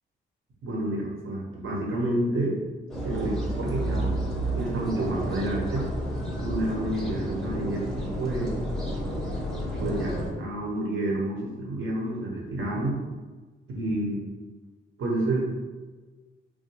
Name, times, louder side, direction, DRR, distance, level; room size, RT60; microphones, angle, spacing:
voice 1, 0.6-2.6 3.0-4.2 4.5-5.8 6.4-7.9 8.2-8.6 9.8-13.0 13.7-14.2 15.0-15.5, right 1 dB, 70° right, -2 dB, 0.9 m, -29 dB
sound 1, 2.9-10.3, right 1 dB, ahead, 0.5 m, -31 dB
3.5 x 2.3 x 2.8 m, 1.3 s
wide cardioid pair, 140°, 21 cm